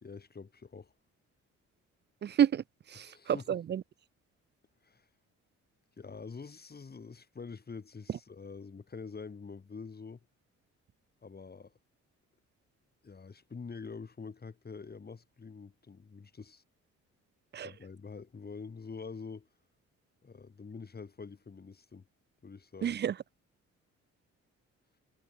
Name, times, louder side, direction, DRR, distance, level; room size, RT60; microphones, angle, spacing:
voice 1, 0.0-0.9 3.0-3.4 4.8-5.1 6.0-10.2 11.2-11.7 13.0-16.6 17.6-19.5 20.2-22.0 22.4-23.0, left 5 dB, 30° left, 4.3 m, -46 dB
voice 2, 2.2-3.8 17.5-17.7 22.8-23.2, right 9 dB, 35° right, 0.5 m, -30 dB
cardioid pair, 90°, 30 cm